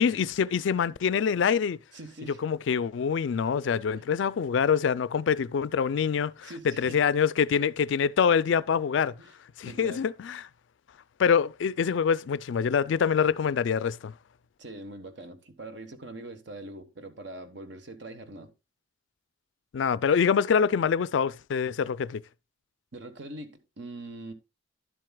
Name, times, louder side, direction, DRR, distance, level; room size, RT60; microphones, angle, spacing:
voice 1, 0.0-1.8 2.4-9.1 9.6-10.4 11.2-14.1 19.7-22.2, left 6 dB, 70° left, 0.4 m, -25 dB
voice 2, 1.9-2.4 3.9-4.1 6.4-7.0 9.2-9.3 9.6-10.0 14.6-18.5 22.9-24.3, right 2 dB, 65° right, 1.1 m, -43 dB
11.0 x 7.6 x 2.2 m
head